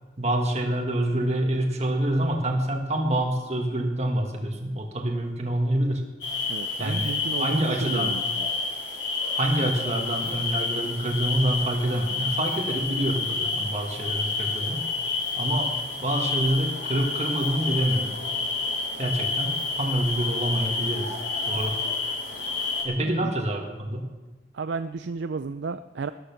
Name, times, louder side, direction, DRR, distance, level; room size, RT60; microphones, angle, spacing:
voice 1, 0.2-6.0 6.8-7.1 7.4-8.1 9.3-14.8 15.4-15.7 16.0-18.2 19.0-21.1 21.5-21.8 22.8-24.1, right 1 dB, 35° right, 1 dB, 1.6 m, -26 dB
sound 1, 6.2-22.8, left 3 dB, 65° left, 3.6 m, -29 dB
voice 2, 6.5-8.5 23.0-23.3 24.5-26.1, right 4 dB, 70° right, 11 dB, 0.4 m, -33 dB
14.0 x 13.0 x 5.9 m, 1.2 s
head